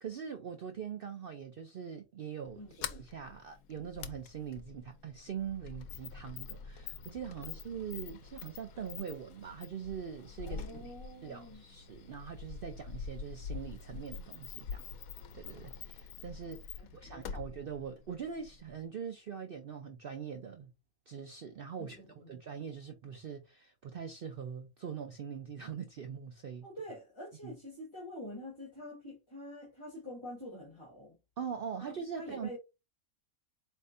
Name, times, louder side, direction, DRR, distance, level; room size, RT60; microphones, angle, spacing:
voice 1, 0.0-10.8 11.2-14.8 15.3-20.7 21.1-26.7 27.4-27.5 31.4-32.6, right 7 dB, 60° right, 0.6 m, -42 dB
Sliding door, 2.5-18.9, left 6 dB, 80° left, 1.1 m, -46 dB
voice 2, 10.4-11.6 16.8-17.4 21.8-22.3 26.6-31.2 31.8-32.6, left 1 dB, 20° left, 1.4 m, -47 dB
4.3 x 3.5 x 2.5 m
omnidirectional pair, 1.5 m